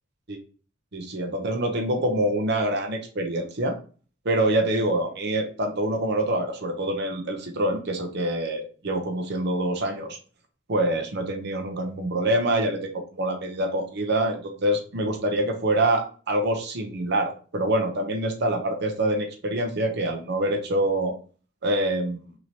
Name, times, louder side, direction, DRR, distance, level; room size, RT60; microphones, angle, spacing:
voice 1, 0.9-3.7 4.2-10.2 10.7-21.1 21.6-22.2, right 1 dB, 55° right, 4 dB, 0.8 m, -25 dB
5.9 x 2.9 x 2.8 m, 0.40 s
head